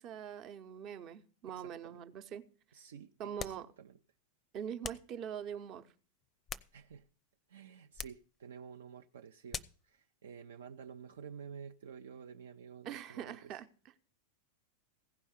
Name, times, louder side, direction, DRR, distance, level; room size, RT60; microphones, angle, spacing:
voice 1, 0.0-2.5 3.2-3.7 4.5-5.9 12.8-13.7, right 8 dB, 35° right, 0.9 m, -43 dB
voice 2, 1.5-2.0 2.7-4.0 6.7-7.1 7.5-13.6, right 7 dB, 65° right, 0.6 m, -51 dB
sound 1, 3.4-3.7 4.8-5.1 6.2-7.1 7.9-8.3 9.5-9.9, left 6 dB, 20° left, 0.5 m, -44 dB
16.0 x 5.4 x 8.1 m
figure-of-eight pair, 90°, 0 cm